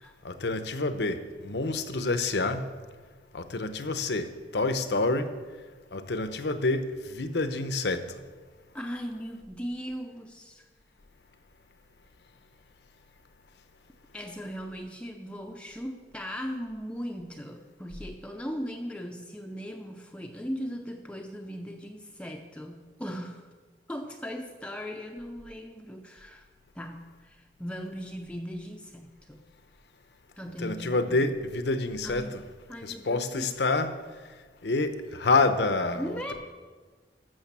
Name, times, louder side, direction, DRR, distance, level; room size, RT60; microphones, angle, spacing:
voice 1, 0.2-2.6 3.3-5.3 5.9-8.2 30.6-32.3 32.8-33.9 34.6-36.3, left 3 dB, 75° left, 0.8 m, -28 dB
voice 2, 8.7-10.7 14.1-23.5 23.9-26.5 26.7-29.4 30.4-31.3 32.0-32.4 32.7-33.6 35.9-36.3, equal, 5° left, 0.6 m, -38 dB
13.0 x 6.3 x 7.3 m
head